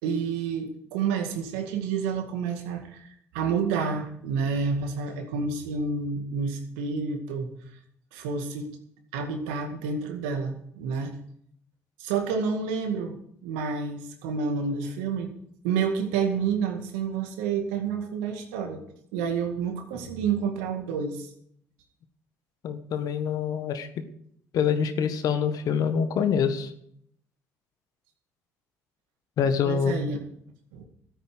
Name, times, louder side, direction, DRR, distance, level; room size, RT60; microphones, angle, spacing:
voice 1, 0.0-7.5 8.1-8.7 9.1-11.2 12.0-13.2 13.4-15.3 15.6-18.8 19.1-21.3 29.6-30.2 30.7-30.9, right 5 dB, 80° right, 5 dB, 2.0 m, -29 dB
voice 2, 22.6-23.9 24.5-26.7 29.4-30.0, left 7 dB, 65° left, 9 dB, 1.5 m, -25 dB
14.0 x 8.8 x 6.2 m, 0.68 s
hypercardioid pair, 55°, 7 cm